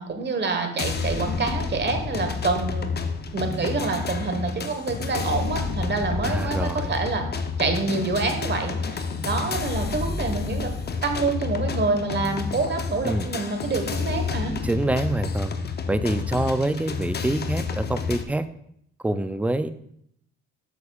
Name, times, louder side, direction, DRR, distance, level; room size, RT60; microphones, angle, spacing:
voice 1, 0.0-2.9 3.3-7.2 7.6-10.7 11.0-14.5, right 3 dB, 35° right, 6 dB, 1.2 m, -27 dB
sound 1, 0.8-18.2, left 5 dB, 35° left, 0.7 m, -29 dB
voice 2, 6.2-6.9 13.0-13.3 14.6-15.5 15.9-18.5 19.0-19.7, right 1 dB, 5° right, 12 dB, 0.3 m, -26 dB
8.2 x 6.8 x 2.4 m, 0.71 s
cardioid pair, 90°, 30 cm